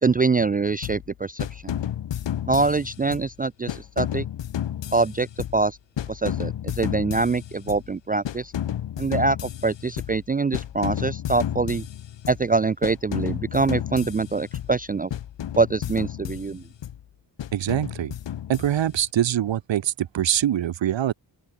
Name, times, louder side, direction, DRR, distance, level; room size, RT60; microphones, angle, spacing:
voice 1, 0.0-1.8 2.5-4.3 4.9-5.8 6.1-8.5 9.0-11.8 12.3-15.1 15.6-16.6, right 4 dB, 20° right, 0.4 m, -24 dB
sound 1, 0.8-1.1 1.4-3.3 3.7-5.7 6.0-7.9 8.2-10.3 10.5-12.5 12.8-14.8 15.1-17.0 17.4-19.1, left 10 dB, 80° left, 1.2 m, -32 dB
voice 2, 17.5-18.1 18.5-21.1, right 11 dB, 85° right, 1.2 m, -24 dB
open air
cardioid pair, 50°, 43 cm